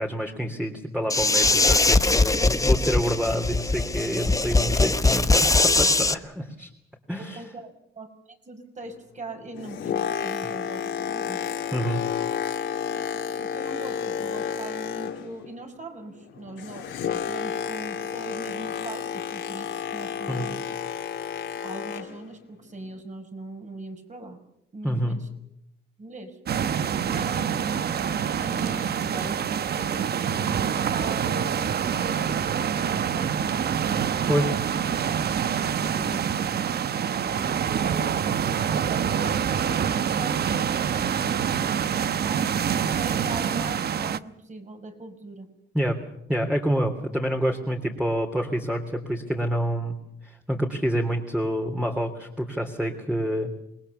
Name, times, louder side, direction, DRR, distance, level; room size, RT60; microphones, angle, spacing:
voice 1, 0.0-6.7 7.1-7.4 11.7-12.0 20.3-20.5 24.8-25.2 34.3-34.5 45.7-46.0 46.3-50.0 50.2-53.5, equal, 5° right, 2 dB, 3.3 m, -27 dB
sound 1, 1.1-6.1, left 3 dB, 15° left, 1.1 m, -21 dB
voice 2, 7.2-11.5 12.8-20.7 21.6-24.4 24.7-25.3 26.0-26.4 27.1-33.8 35.4-36.3 36.9-38.2 38.7-42.5 42.9-45.5, right 2 dB, 40° right, 6 dB, 5.9 m, -41 dB
Boat Water vehicle, 9.4-15.5 15.8-22.2 22.9-23.0, left 8 dB, 70° left, 3.0 m, -31 dB
sound 2, 26.5-44.2, right 8 dB, 55° right, 1.0 m, -26 dB
27.5 x 21.0 x 7.1 m, 0.79 s
cardioid pair, 90°, 20 cm